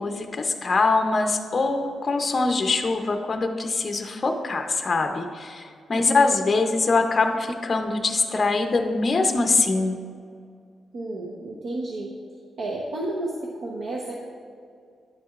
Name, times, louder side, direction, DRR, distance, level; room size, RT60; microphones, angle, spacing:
voice 1, 0.0-9.9, left 3 dB, 30° left, 5 dB, 0.5 m, -23 dB
voice 2, 10.9-12.1 12.6-14.1, right 2 dB, 65° right, -3 dB, 0.9 m, -31 dB
10.5 x 7.5 x 2.4 m, 2.3 s
wide cardioid pair, 155°, 0 cm